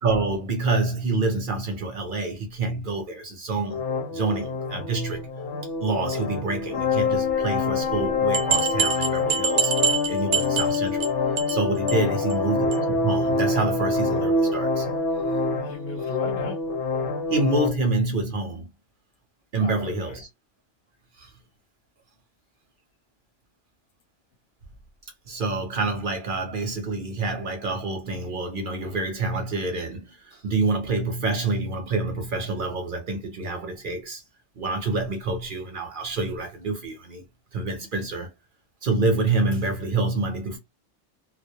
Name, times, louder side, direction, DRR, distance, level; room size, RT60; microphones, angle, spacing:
voice 1, 0.0-3.8 4.1-5.3 5.8-9.7 10.1-11.1 11.5-14.9 17.3-18.7 19.5-20.3 21.2-21.3 25.3-34.2 34.6-37.2 37.5-38.3 38.8-40.6, right 3 dB, 55° right, 0.7 m, -27 dB
sound 1, 3.7-17.7, left 3 dB, 85° left, 1.0 m, -26 dB
sound 2, 7.9-8.0 8.3-11.1 11.4-11.6 11.9-12.0 12.3-12.4 12.7-12.8, right 7 dB, 80° right, 0.9 m, -25 dB
voice 2, 12.1-12.4 15.6-16.6 19.6-20.2, left 6 dB, 65° left, 0.8 m, -36 dB
2.2 x 2.1 x 2.7 m
omnidirectional pair, 1.2 m